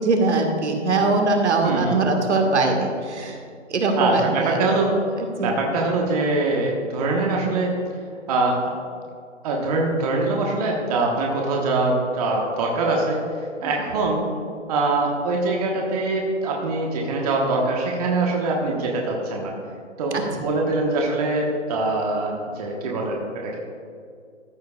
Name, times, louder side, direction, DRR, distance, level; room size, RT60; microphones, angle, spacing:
voice 1, 0.0-3.4 3.7-4.6 5.2-5.5 13.6-13.7 20.1-20.2, right 3 dB, 65° right, 2 dB, 1.8 m, -21 dB
voice 2, 1.6-2.0 4.0-4.9 5.4-7.8 8.3-8.6 9.4-13.2 13.6-14.2 14.7-19.5 20.0-23.6, right 2 dB, 30° right, -1 dB, 1.3 m, -23 dB
14.5 x 8.1 x 2.4 m, 2.2 s
hypercardioid pair, 145°, 36 cm